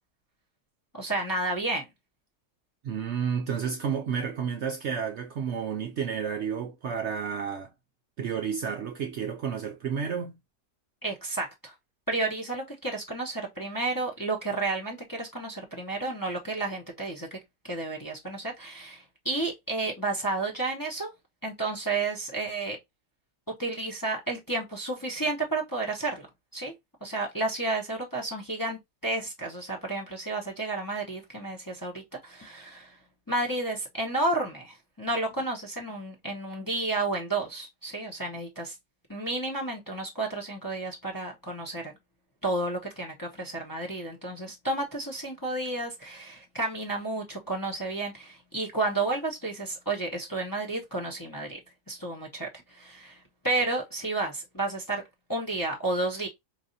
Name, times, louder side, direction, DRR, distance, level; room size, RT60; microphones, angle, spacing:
voice 1, 0.9-1.9 11.0-11.7 12.1-17.4 17.6-21.1 21.4-22.8 23.5-26.3 26.5-26.7 27.0-33.0 33.3-38.8 39.1-41.9 42.4-51.6 51.9-55.0 55.3-56.3, right 2 dB, 20° left, 0.7 m, -31 dB
voice 2, 2.8-7.7 8.2-10.4, right 7 dB, 65° right, 0.7 m, -31 dB
4.7 x 2.5 x 2.6 m
omnidirectional pair, 1.6 m